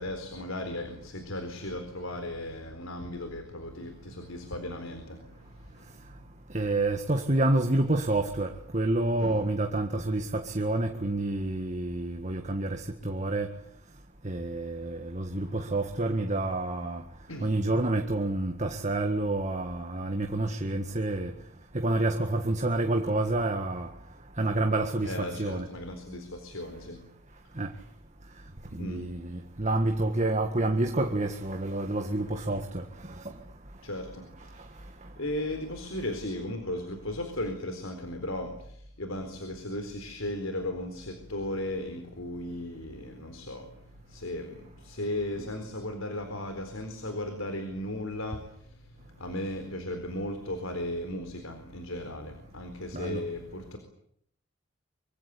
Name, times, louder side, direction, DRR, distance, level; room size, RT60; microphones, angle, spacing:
voice 1, 0.0-6.3 9.2-9.4 17.3-17.5 25.0-27.0 28.7-29.1 33.8-34.7 35.2-53.8, left 1 dB, 80° left, 4.2 m, -36 dB
voice 2, 6.5-13.5 14.2-17.0 17.4-21.3 21.7-23.9 24.4-25.7 27.6-27.7 28.7-33.3 52.9-53.2, right 2 dB, 35° right, 1.7 m, -28 dB
25.0 x 24.5 x 8.5 m
head